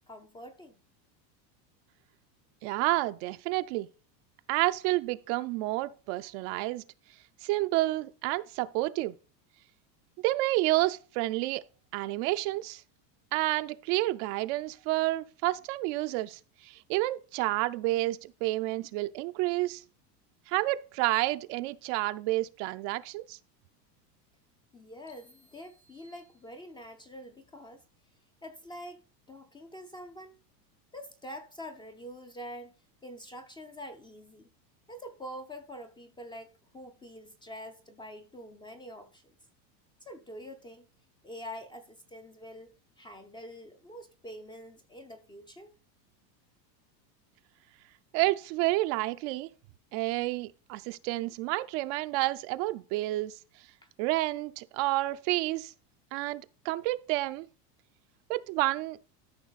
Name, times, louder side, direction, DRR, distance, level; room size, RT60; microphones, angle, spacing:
voice 1, 0.1-0.8 24.7-27.8 28.4-30.4 30.9-32.7 33.0-34.5 34.9-39.3 40.0-40.9 41.2-45.7 53.8-53.9, equal, 10° left, 0.4 m, -46 dB
voice 2, 2.6-3.9 4.5-6.8 7.4-9.1 10.2-11.6 11.9-12.8 13.3-19.8 20.5-23.4 48.1-49.5 49.9-53.4 54.0-55.7 56.1-57.5 58.3-59.0, right 18 dB, 50° right, 0.5 m, -30 dB
sound 1, 25.1-27.0, equal, 65° left, 3.8 m, -65 dB
13.0 x 5.7 x 4.0 m
supercardioid pair, 135°, 50 cm